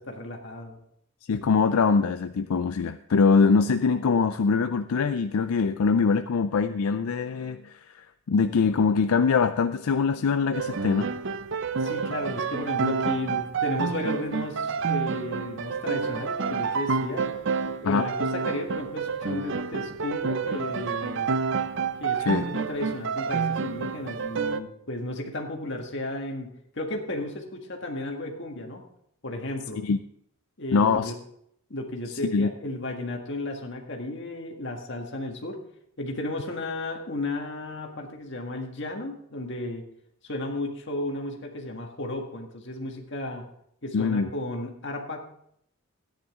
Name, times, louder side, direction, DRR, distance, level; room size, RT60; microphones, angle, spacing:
voice 1, 0.1-0.8 11.8-17.3 17.8-21.3 22.0-28.8 29.2-29.8 30.6-31.2 31.7-35.6 36.0-39.8 40.2-43.4 43.8-45.2, left 1 dB, 55° left, 2 dB, 1.7 m, -34 dB
voice 2, 1.3-11.1 17.8-18.1 22.2-22.4 29.8-30.0 30.7-31.1 32.3-32.5 43.9-44.3, left 5 dB, 80° left, 10 dB, 0.4 m, -23 dB
sound 1, 10.5-24.6, right 5 dB, 55° right, 0.5 m, -29 dB
13.5 x 10.0 x 3.7 m, 0.72 s
head